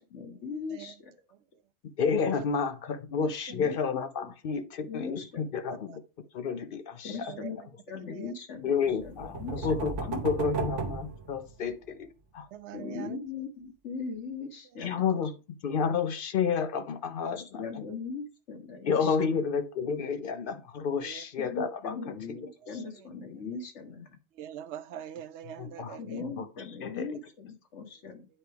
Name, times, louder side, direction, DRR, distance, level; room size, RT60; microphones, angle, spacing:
voice 1, 0.0-1.1 3.5-3.8 4.2-4.3 4.9-5.5 7.0-7.6 7.9-9.7 10.0-10.2 12.7-15.2 17.3-19.3 21.4-24.1 26.0-28.3, left 4 dB, 80° left, 1.5 m, -39 dB
voice 2, 2.0-6.0 6.3-7.1 8.6-12.1 12.3-12.5 14.8-15.3 15.6-17.4 18.9-22.0 25.6-26.0 26.4-26.5 26.8-27.1, left 6 dB, 55° left, 0.7 m, -30 dB
voice 3, 3.2-3.6 5.7-6.0 7.1-7.7 8.0-8.4 12.5-13.2 14.7-15.1 21.0-21.3 22.6-23.1 24.3-26.2, right 11 dB, 75° right, 0.9 m, -44 dB
sound 1, 9.0-11.9, right 3 dB, 90° right, 1.3 m, -35 dB
8.8 x 4.6 x 3.4 m
omnidirectional pair, 1.2 m